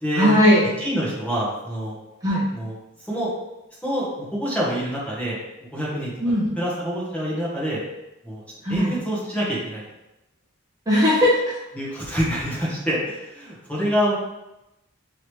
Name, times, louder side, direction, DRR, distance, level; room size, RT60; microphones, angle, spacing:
voice 1, 0.1-0.6 2.2-2.4 6.2-6.6 8.6-9.0 10.9-11.5, left 1 dB, 15° right, -8 dB, 0.8 m, -18 dB
voice 2, 0.8-2.0 2.5-2.7 3.0-3.3 3.8-5.4 5.7-6.1 6.6-7.8 8.2-8.4 8.7-9.8 11.7-14.1, equal, 5° left, -7 dB, 1.1 m, -26 dB
3.8 x 3.1 x 3.2 m, 0.94 s
head